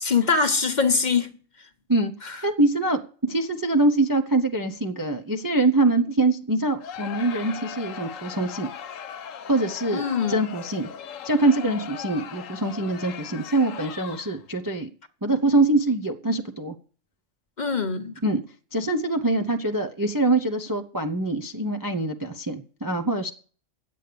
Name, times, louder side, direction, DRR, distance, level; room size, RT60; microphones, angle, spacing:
voice 1, 0.0-1.7 2.2-2.5 9.9-10.5 17.6-18.2, left 5 dB, 40° left, 0.9 m, -24 dB
voice 2, 2.4-8.7 9.5-10.0 10.3-10.9 11.2-14.9 15.2-16.7 18.2-18.4 18.7-23.3, right 2 dB, 25° right, 0.5 m, -24 dB
Crowd, 6.8-14.5, left 8 dB, 85° left, 1.1 m, -38 dB
9.2 x 8.4 x 6.8 m
omnidirectional pair, 1.3 m